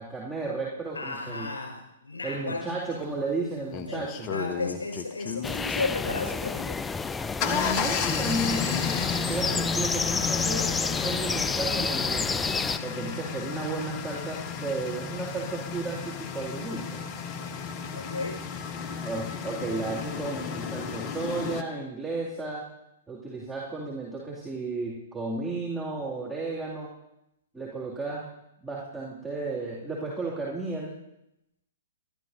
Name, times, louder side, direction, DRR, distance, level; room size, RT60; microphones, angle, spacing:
voice 1, 0.0-1.5 2.2-4.3 7.4-12.3 12.8-17.0 19.0-22.7 23.1-26.9 27.5-28.3 28.6-31.0, right 3 dB, 5° right, -8 dB, 2.5 m, -33 dB
voice 2, 0.9-2.6 3.9-6.8 17.9-18.4, left 3 dB, 75° left, 1 dB, 5.2 m, -33 dB
sound 1, 3.0-3.1 3.7-5.6 7.0-21.6, left 7 dB, 30° left, 0.9 m, -33 dB
sound 2, 5.4-12.8, left 4 dB, 10° left, 0.4 m, -29 dB
22.0 x 13.0 x 2.7 m, 0.84 s
figure-of-eight pair, 115°, 0 cm